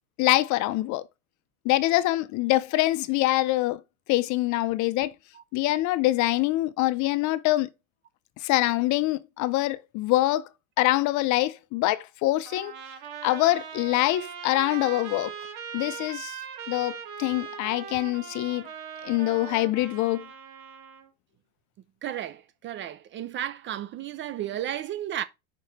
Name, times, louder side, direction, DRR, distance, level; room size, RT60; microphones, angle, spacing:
voice 1, 0.2-1.1 1.6-3.8 4.1-5.1 5.5-7.7 8.4-10.5 10.8-12.7 13.2-15.3 15.7-16.4 16.7-18.7 19.0-20.3, left 17 dB, 45° left, 0.6 m, -24 dB
Trumpet, 12.5-21.1, right 7 dB, 75° right, 1.9 m, -40 dB
voice 2, 22.0-25.2, right 11 dB, 30° right, 0.4 m, -33 dB
5.2 x 4.8 x 5.3 m
supercardioid pair, 105°, 42 cm